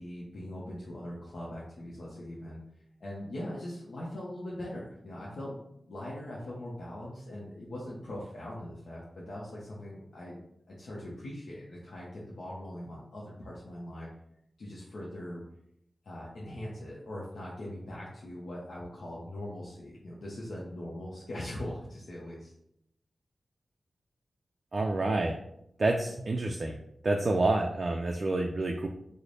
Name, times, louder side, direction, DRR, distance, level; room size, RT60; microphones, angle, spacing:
voice 1, 0.0-2.6 3.0-5.6 5.9-10.4 10.7-14.1 14.6-15.4 16.0-22.5, left 1 dB, 85° left, -6 dB, 0.6 m, -41 dB
voice 2, 24.7-25.4 25.8-26.8 27.0-28.9, right 2 dB, 55° right, 2 dB, 0.3 m, -28 dB
3.2 x 2.0 x 3.8 m, 0.78 s
cardioid pair, 55°, 0 cm